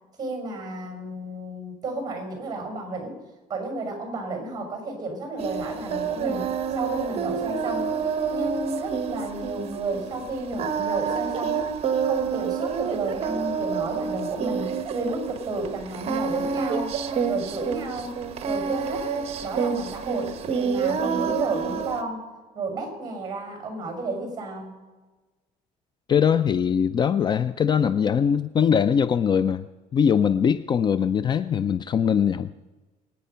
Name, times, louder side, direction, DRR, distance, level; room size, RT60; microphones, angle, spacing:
voice 1, 0.2-3.2 3.5-7.9 8.3-11.7 12.0-17.0 17.3-18.1 18.5-19.1 19.4-22.3 22.5-24.8, right 2 dB, 25° right, 4 dB, 5.5 m, -32 dB
Singing, 5.4-22.0, right 6 dB, 45° right, 1.2 m, -28 dB
voice 2, 26.1-29.7 29.9-32.5, left 7 dB, 30° left, 14 dB, 0.4 m, -21 dB
24.0 x 9.5 x 5.6 m, 1.2 s
cardioid pair, 140°, 14 cm